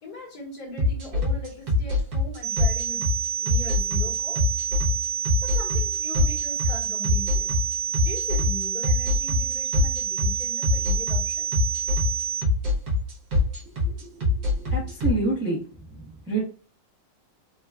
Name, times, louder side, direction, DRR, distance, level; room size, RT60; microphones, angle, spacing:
voice 1, 0.0-4.5 5.4-7.5 7.9-11.5, left 3 dB, 55° left, -2 dB, 1.8 m, -40 dB
sound 1, 0.8-15.1, left 2 dB, 60° right, 1.4 m, -23 dB
sound 2, 2.4-12.4, right 8 dB, 75° right, 1.4 m, -29 dB
voice 2, 13.8-14.2 14.6-15.6 15.9-16.4, right 3 dB, 15° right, -5 dB, 0.4 m, -28 dB
3.8 x 2.4 x 2.2 m, 0.36 s
omnidirectional pair, 2.0 m